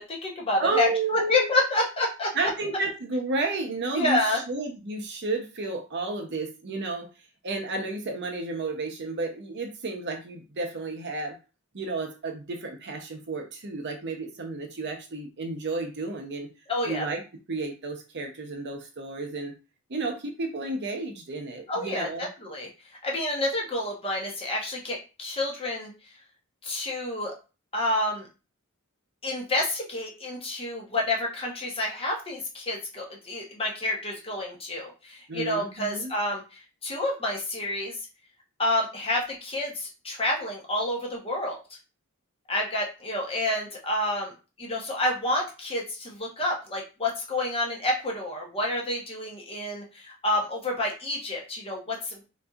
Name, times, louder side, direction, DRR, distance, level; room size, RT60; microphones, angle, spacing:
voice 1, 0.0-2.3 3.9-4.4 16.7-17.1 21.7-22.7 23.0-25.9 26.6-27.3 27.7-28.3 29.2-37.9 38.6-41.6 42.5-44.3 44.6-52.2, left 1 dB, 25° left, -1 dB, 0.9 m, -29 dB
voice 2, 0.6-1.5 2.3-7.1 7.4-11.4 11.7-16.5 16.8-17.2 17.5-19.5 19.9-22.3 35.3-36.1, right 3 dB, 55° right, 2 dB, 0.7 m, -31 dB
4.0 x 2.6 x 2.4 m, 0.31 s
head